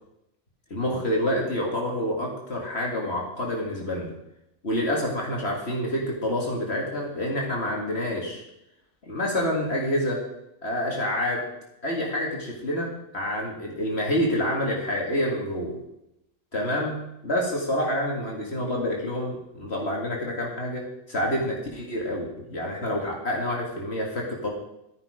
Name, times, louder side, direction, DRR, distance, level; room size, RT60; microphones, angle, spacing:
voice 1, 0.7-4.1 4.6-8.4 9.1-10.2 10.6-11.4 11.8-15.8 16.5-24.5, left 1 dB, 55° left, -1 dB, 2.4 m, -28 dB
12.0 x 11.0 x 5.0 m, 0.84 s
omnidirectional pair, 1.4 m